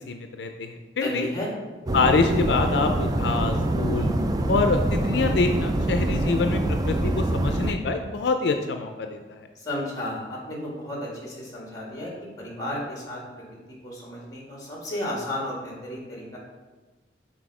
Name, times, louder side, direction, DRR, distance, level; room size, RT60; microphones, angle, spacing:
voice 1, 0.1-1.3 1.9-4.1 4.5-9.5, left 4 dB, 75° left, 6 dB, 0.4 m, -25 dB
voice 2, 1.0-1.5 9.6-12.1 12.4-13.4 13.8-16.4, left 1 dB, 20° left, -3 dB, 1.8 m, -33 dB
sound 1, 1.9-7.7, right 1 dB, 20° right, 0.3 m, -25 dB
6.1 x 4.2 x 4.8 m, 1.3 s
head